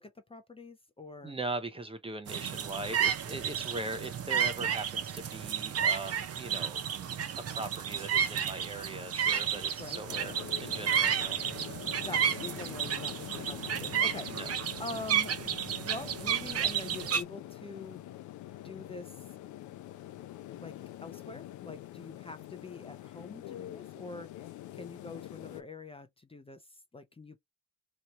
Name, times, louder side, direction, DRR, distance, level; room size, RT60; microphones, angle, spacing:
voice 1, 0.0-1.4 9.8-10.0 12.0-15.3 15.8-18.0 18.5-19.1 20.6-27.4, left 3 dB, 20° left, 0.6 m, -45 dB
voice 2, 1.2-6.8 7.3-11.4 14.3-14.5, right 2 dB, 20° right, 0.7 m, -40 dB
sound 1, 2.3-17.2, right 8 dB, 55° right, 0.7 m, -32 dB
sound 2, 10.1-25.6, left 14 dB, 80° left, 0.6 m, -45 dB
3.0 x 2.3 x 4.2 m
cardioid pair, 90°, 30 cm